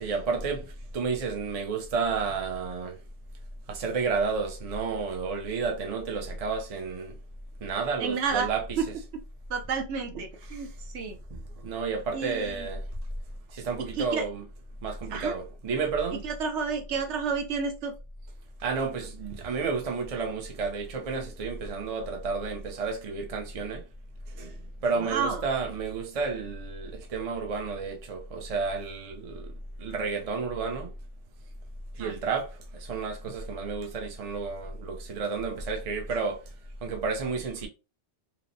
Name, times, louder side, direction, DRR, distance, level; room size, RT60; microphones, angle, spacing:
voice 1, 0.0-3.0 3.7-7.2 7.6-8.6 11.3-12.9 13.5-14.4 14.8-16.2 18.6-23.8 24.3-29.5 29.8-30.9 32.0-36.4 36.8-37.7, right 4 dB, 45° right, 0.5 m, -31 dB
voice 2, 8.0-8.9 9.5-11.2 12.1-12.7 13.9-14.3 15.1-15.3 16.2-17.9 24.9-25.5 32.0-32.1, right 5 dB, 75° right, 0.9 m, -31 dB
2.9 x 2.0 x 2.5 m
omnidirectional pair, 1.2 m